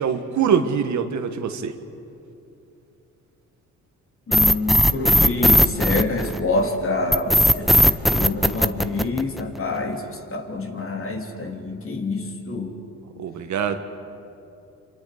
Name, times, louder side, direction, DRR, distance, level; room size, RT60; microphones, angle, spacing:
voice 1, 0.0-1.7 13.2-13.8, right 7 dB, 70° right, 7 dB, 1.6 m, -23 dB
voice 2, 4.3-10.0 10.3-12.8, left 3 dB, 45° left, 3 dB, 3.0 m, -26 dB
sound 1, 4.3-6.6 7.1-9.6, equal, ahead, 0.7 m, -17 dB
28.0 x 26.0 x 5.1 m, 2.8 s
cardioid pair, 90°, 30 cm